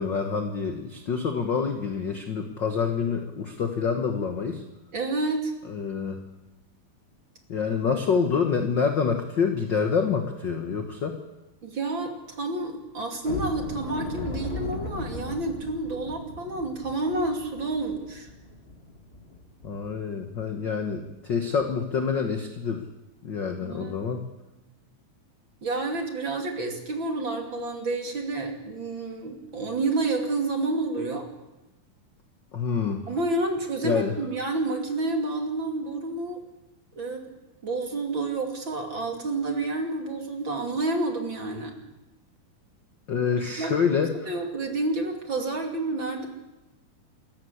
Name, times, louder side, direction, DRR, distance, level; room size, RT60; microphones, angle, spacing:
voice 1, 0.0-4.6 5.7-6.2 7.5-11.2 19.6-22.9 23.2-24.2 32.5-33.0 33.8-34.1 43.1-44.3, left 6 dB, 60° left, 5 dB, 1.2 m, -27 dB
voice 2, 4.9-5.5 11.6-18.3 23.6-24.0 25.6-31.3 33.1-36.4 36.9-37.3 37.6-41.7 43.6-43.7 44.3-46.3, right 2 dB, 35° right, 3 dB, 2.9 m, -29 dB
sound 1, 13.2-20.0 20.3-20.5 20.9-21.1 21.5-21.7, left 3 dB, 30° left, 1.2 m, -38 dB
27.5 x 14.5 x 8.1 m, 1.0 s
omnidirectional pair, 4.3 m